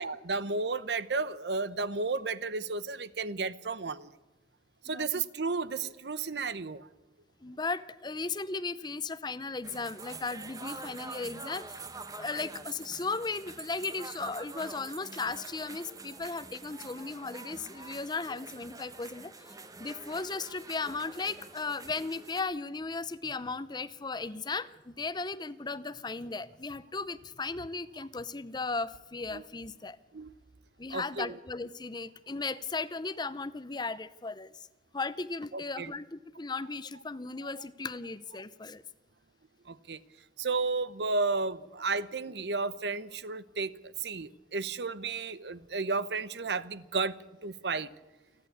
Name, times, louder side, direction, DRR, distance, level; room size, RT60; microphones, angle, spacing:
voice 1, 0.0-4.1 4.8-6.9 29.3-29.4 30.1-30.3 30.9-31.4 35.5-35.9 37.6-37.7 39.7-40.0 40.4-47.9, right 4 dB, 70° right, 0.8 m, -33 dB
voice 2, 7.4-11.6 12.1-19.3 19.8-30.0 30.8-34.5 34.9-38.8, left 4 dB, 25° left, 0.7 m, -36 dB
sound 1, 9.6-22.4, right 3 dB, 20° right, 1.2 m, -46 dB
29.0 x 11.0 x 8.4 m
head